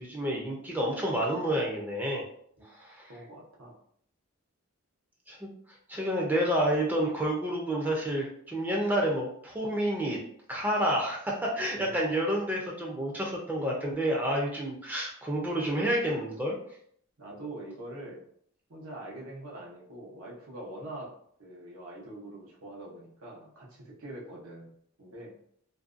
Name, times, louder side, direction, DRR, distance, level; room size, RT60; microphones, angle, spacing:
voice 1, 0.0-2.2 2.8-3.1 5.3-5.5 5.9-10.2 10.5-16.6, right 1 dB, 10° right, -3 dB, 0.4 m, -29 dB
voice 2, 3.1-3.8 11.7-11.9 17.2-18.2 18.7-21.1 21.4-24.7 25.0-25.3, right 1 dB, 85° right, -3 dB, 0.8 m, -44 dB
2.5 x 2.2 x 2.4 m, 0.64 s
head